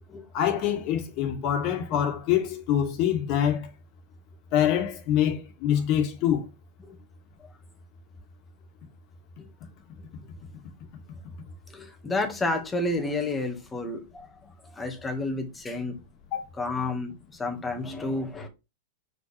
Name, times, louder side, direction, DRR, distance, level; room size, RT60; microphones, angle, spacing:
voice 1, 0.3-3.7 4.5-6.4 16.3-16.4, left 10 dB, 45° left, 2.2 m, -25 dB
voice 2, 11.7-14.3 14.6-16.0 16.5-18.5, left 2 dB, 15° left, 1.7 m, -31 dB
6.2 x 5.2 x 3.4 m
hypercardioid pair, 130°, 0 cm